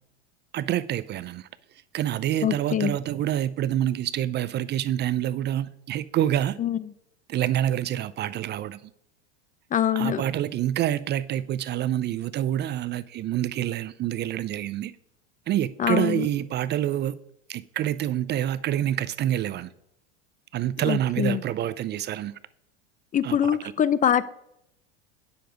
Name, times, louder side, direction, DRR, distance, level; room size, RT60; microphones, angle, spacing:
voice 1, 0.5-1.5 1.9-6.6 7.3-8.9 10.0-14.9 15.5-17.2 17.5-19.7 20.5-22.3 23.2-23.4, right 12 dB, 30° right, 0.4 m, -27 dB
voice 2, 2.4-2.9 6.6-6.8 9.7-10.2 15.8-16.3 20.9-21.4 23.1-24.2, left 9 dB, 25° left, 0.5 m, -24 dB
10.0 x 6.9 x 5.1 m
hypercardioid pair, 100°, 35 cm